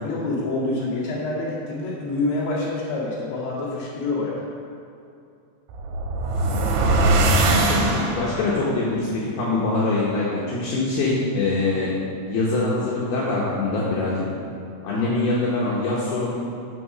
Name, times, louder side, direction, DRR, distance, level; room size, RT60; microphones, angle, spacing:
voice 1, 0.0-4.4 14.9-15.1, left 2 dB, 50° left, -7 dB, 2.5 m, -27 dB
sound 1, 5.7-8.5, right 2 dB, 75° right, 2.6 m, -20 dB
voice 2, 7.6-11.9 12.2-14.3 14.8-16.3, left 2 dB, 70° left, -6 dB, 2.8 m, -24 dB
6.9 x 6.4 x 6.0 m, 2.5 s
omnidirectional pair, 5.2 m